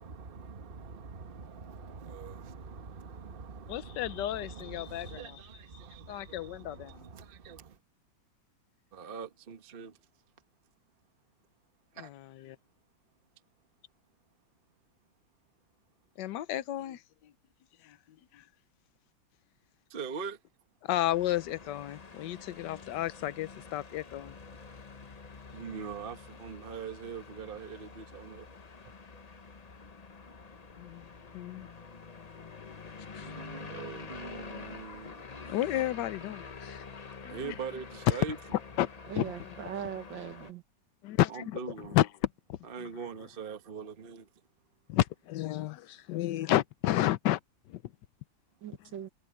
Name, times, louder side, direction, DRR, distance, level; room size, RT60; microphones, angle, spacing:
voice 1, 0.0-7.8 8.9-10.0 11.9-12.1 19.9-20.4 25.5-28.5 31.9-32.0 33.2-35.2 37.3-38.4 41.3-42.0 42.6-44.3, right 5 dB, 35° right, 1.1 m, -43 dB
voice 2, 3.7-5.3 6.1-7.1 12.0-12.6 16.2-17.3 17.8-18.0 18.3-18.4 20.8-24.4 30.8-31.1 31.3-31.7 33.2-33.3 35.5-36.9 37.2-37.5 38.8-38.9 39.1-39.5 41.0-41.6 41.9-42.1 42.5-42.6 44.9-47.4 47.7-47.9, left 14 dB, 70° left, 1.3 m, -32 dB
sound 1, 21.0-40.5, left 4 dB, 40° left, 0.5 m, -47 dB
voice 3, 39.1-40.6 48.6-49.1, right 9 dB, 70° right, 2.3 m, -40 dB
omnidirectional pair, 2.1 m